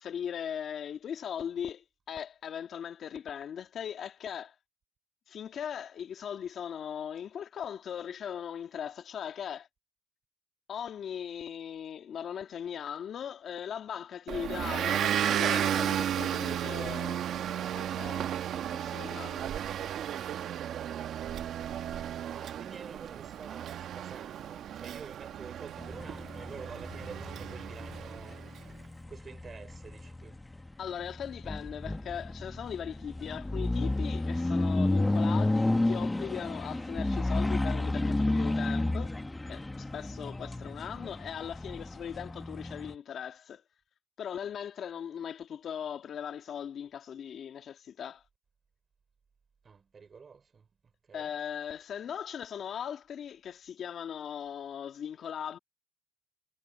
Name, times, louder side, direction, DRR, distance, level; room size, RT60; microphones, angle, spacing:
voice 1, 0.0-4.5 5.3-9.7 10.7-17.2 17.6-19.5 30.8-39.2 39.5-43.6 44.2-48.2 51.1-55.6, left 8 dB, 65° left, 2.0 m, -39 dB
Motor vehicle (road) / Engine, 14.3-28.5, right 10 dB, 70° right, 1.3 m, -34 dB
voice 2, 21.9-28.4 29.1-30.4 49.6-51.3, right 5 dB, 40° right, 4.7 m, -49 dB
sound 1, 25.8-42.9, left 2 dB, 15° left, 1.4 m, -32 dB
cardioid pair, 90°, 0 cm